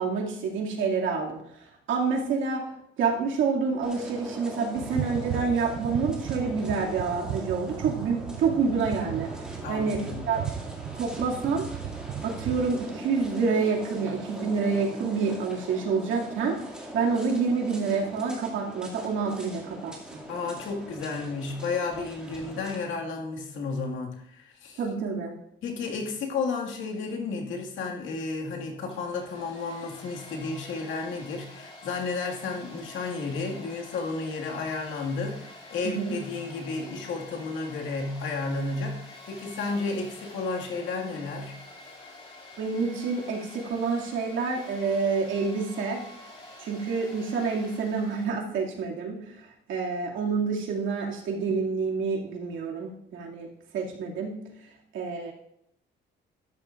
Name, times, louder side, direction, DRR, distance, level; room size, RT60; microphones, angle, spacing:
voice 1, 0.0-2.6 3.0-9.3 9.7-10.0 10.3-10.4 10.9-11.7 12.2-20.2 24.8-25.3 35.8-36.1 42.6-46.0 46.6-53.5 53.7-54.3 54.9-55.3, right 5 dB, 80° right, -1 dB, 2.5 m, -28 dB
sound 1, 3.8-22.8, right 1 dB, 5° right, 2.3 m, -42 dB
sound 2, 4.8-12.8, right 10 dB, 55° right, 0.6 m, -36 dB
voice 2, 9.6-10.3 20.3-24.8 25.6-41.5, left 4 dB, 85° left, 1 dB, 2.1 m, -32 dB
Domestic sounds home sounds, 28.8-48.3, left 2 dB, 30° left, 2.7 m, -48 dB
13.0 x 10.5 x 2.5 m, 0.75 s
cardioid pair, 145°, 20 cm